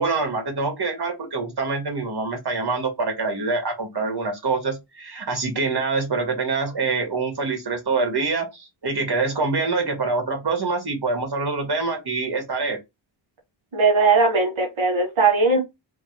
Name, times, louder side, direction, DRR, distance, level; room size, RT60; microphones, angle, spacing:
voice 1, 0.0-12.8, right 3 dB, 55° right, 1.7 m, -25 dB
voice 2, 13.7-15.6, right 4 dB, 80° right, 1.3 m, -19 dB
3.6 x 2.8 x 4.5 m
wide cardioid pair, 75°, 47 cm